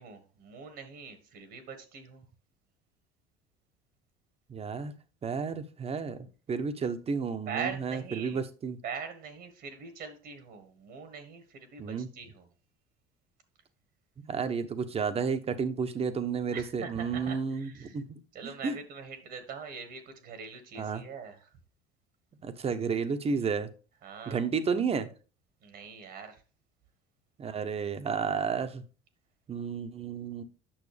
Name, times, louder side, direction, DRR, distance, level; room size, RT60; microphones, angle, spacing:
voice 1, 0.0-2.2 7.4-8.4 8.8-12.5 16.5-18.0 18.3-21.5 24.0-24.5 25.6-26.4, right 6 dB, 60° right, 9 dB, 1.6 m, -42 dB
voice 2, 4.5-4.9 5.2-8.8 11.8-12.1 14.2-18.8 20.8-21.0 22.4-23.7 24.3-25.1 27.4-28.8 29.5-30.4, right 5 dB, 30° right, 9 dB, 1.1 m, -32 dB
8.8 x 6.0 x 3.4 m, 0.36 s
hypercardioid pair, 80°, 19 cm